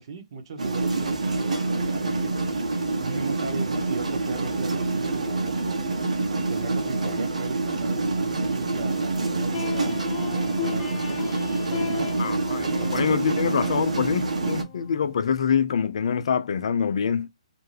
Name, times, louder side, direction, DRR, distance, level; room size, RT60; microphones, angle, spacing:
voice 1, 0.0-2.5 3.0-5.8 6.2-9.9 10.4-11.3 11.7-12.2 12.5-13.5 15.0-15.1, right 5 dB, 45° right, 0.9 m, -38 dB
sound 1, 0.6-14.6, right 3 dB, 75° right, 0.9 m, -26 dB
sound 2, 9.5-15.6, left 8 dB, 30° left, 0.8 m, -36 dB
voice 2, 12.2-17.3, left 7 dB, 55° left, 0.4 m, -25 dB
2.6 x 2.2 x 3.3 m
hypercardioid pair, 145°, 4 cm